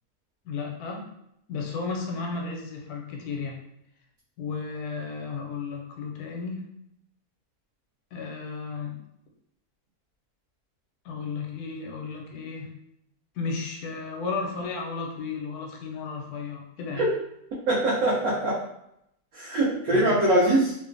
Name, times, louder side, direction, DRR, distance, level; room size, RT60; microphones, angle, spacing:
voice 1, 0.4-1.1 1.5-3.6 4.4-6.7 8.1-9.0 11.0-12.7 13.3-17.0 19.9-20.2, left 4 dB, 80° left, 1 dB, 1.1 m, -34 dB
voice 2, 17.7-18.6 19.3-20.7, right 1 dB, 70° right, -6 dB, 1.0 m, -22 dB
3.0 x 2.1 x 2.5 m, 0.78 s
omnidirectional pair, 1.7 m